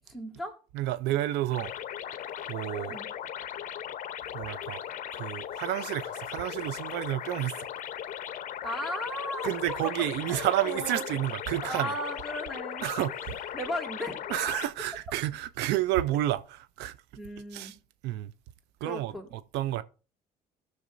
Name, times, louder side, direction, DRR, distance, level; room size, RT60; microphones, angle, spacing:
voice 1, 0.1-0.5 2.9-3.1 8.6-11.0 11.6-13.2 13.5-14.2 17.2-17.7 18.8-19.3, left 1 dB, ahead, 2.2 m, -36 dB
voice 2, 0.7-1.7 2.5-3.0 4.3-4.8 5.1-7.7 9.4-12.1 12.8-13.6 14.3-17.0 17.5-17.8 18.0-18.3 18.8-19.8, right 14 dB, 85° right, 0.5 m, -30 dB
boiling bubbles, 1.5-14.7, left 10 dB, 55° left, 0.7 m, -38 dB
15.0 x 6.5 x 2.6 m
cardioid pair, 110°, 17 cm